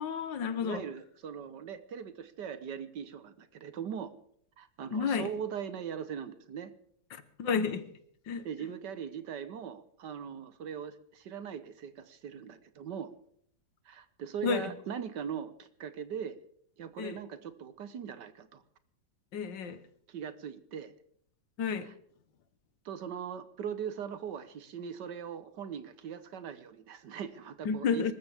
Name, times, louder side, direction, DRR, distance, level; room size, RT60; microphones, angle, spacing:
voice 1, 0.0-0.9 4.9-5.3 7.1-7.9 8.3-8.5 14.4-14.7 17.0-17.2 19.3-19.8 21.6-21.9 27.7-28.1, left 6 dB, 70° left, 1.9 m, -31 dB
voice 2, 0.6-4.1 4.6-6.7 8.4-13.1 13.8-16.4 16.8-18.6 20.1-20.9 22.8-28.1, right 8 dB, 65° right, 1.6 m, -40 dB
25.0 x 13.5 x 3.5 m
omnidirectional pair, 2.1 m